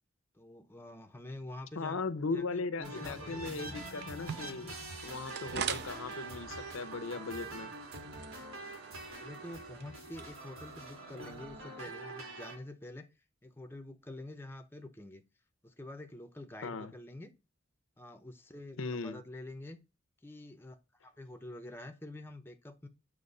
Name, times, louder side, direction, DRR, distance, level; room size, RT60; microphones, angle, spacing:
voice 1, 0.3-2.0 2.3-3.7 8.9-13.1 13.4-15.2 15.6-17.3 18.0-19.8 20.2-20.8 21.0-22.9, left 1 dB, 10° left, 0.6 m, -47 dB
voice 2, 1.8-4.7 5.0-7.7 16.6-16.9 18.8-19.2, left 4 dB, 80° left, 0.7 m, -38 dB
sound 1, 2.8-12.6, right 2 dB, 80° right, 2.9 m, -45 dB
sound 2, 4.0-11.9, right 8 dB, 55° right, 0.4 m, -44 dB
7.8 x 3.1 x 5.3 m
head